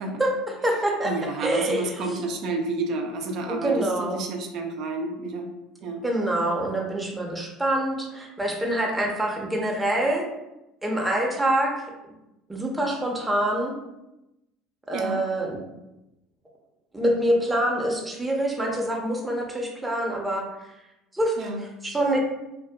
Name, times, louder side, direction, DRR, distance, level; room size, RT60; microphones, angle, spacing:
voice 1, 0.2-1.1 1.4-2.2 3.5-4.2 6.0-10.2 10.8-11.7 12.5-13.7 14.9-15.6 16.9-20.7 21.1-22.2, right 1 dB, 10° right, -1 dB, 0.6 m, -26 dB
voice 2, 1.0-5.5 5.8-6.0 14.9-15.2 21.4-21.6, right 3 dB, 60° right, 3 dB, 0.4 m, -30 dB
2.6 x 2.1 x 2.2 m, 0.93 s
hypercardioid pair, 90°, 0 cm